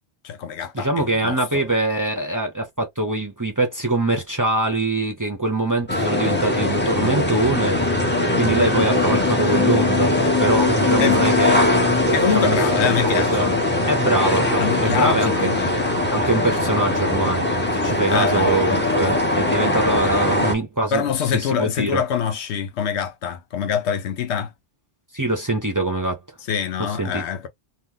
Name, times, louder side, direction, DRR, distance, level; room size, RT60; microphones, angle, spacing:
voice 1, 0.2-1.7 11.0-11.6 12.1-13.6 14.6-16.0 18.1-19.0 20.9-24.5 26.5-27.5, left 7 dB, 80° left, 0.9 m, -25 dB
voice 2, 0.7-7.8 8.2-11.8 12.3-13.5 13.9-15.3 16.1-17.5 17.8-21.0 21.4-22.0 25.1-26.2 27.0-27.2, right 2 dB, 20° right, 0.8 m, -23 dB
sound 1, 5.9-20.5, left 2 dB, 10° left, 0.8 m, -20 dB
3.0 x 2.0 x 3.7 m
omnidirectional pair, 1.1 m